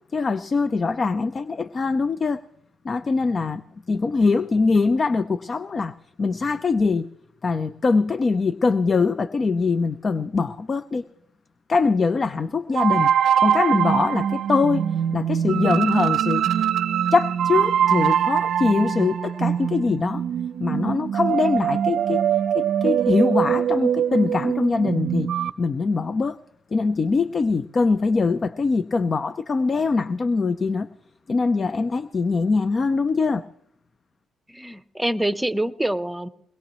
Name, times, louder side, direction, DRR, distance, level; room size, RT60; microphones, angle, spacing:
voice 1, 0.1-2.4 2.8-3.6 3.9-5.9 6.2-7.1 7.4-11.0 11.7-13.1 13.4-16.5 17.1-20.2 20.6-22.2 22.5-26.4 26.7-30.9 31.3-33.4, left 4 dB, 35° left, 13 dB, 0.6 m, -23 dB
sound 1, 12.7-25.5, right 9 dB, 65° right, 0.6 m, -23 dB
voice 2, 34.5-36.3, right 1 dB, 5° right, 13 dB, 0.8 m, -26 dB
22.5 x 20.0 x 3.1 m, 0.73 s
cardioid pair, 90°, 0 cm